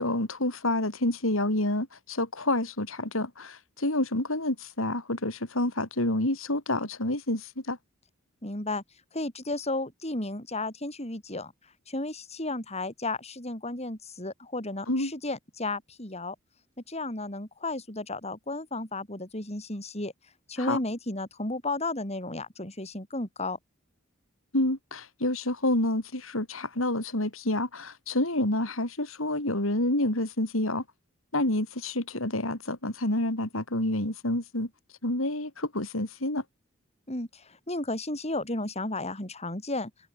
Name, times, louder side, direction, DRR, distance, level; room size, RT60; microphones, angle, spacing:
voice 1, 0.0-7.8 14.9-15.1 20.6-20.8 24.5-30.8 31.3-34.7 35.0-36.4, left 1 dB, 80° left, 5.4 m, -28 dB
voice 2, 8.4-8.8 9.1-11.5 11.9-16.4 16.9-20.1 20.5-23.6 37.1-39.9, left 2 dB, 30° left, 7.0 m, -33 dB
head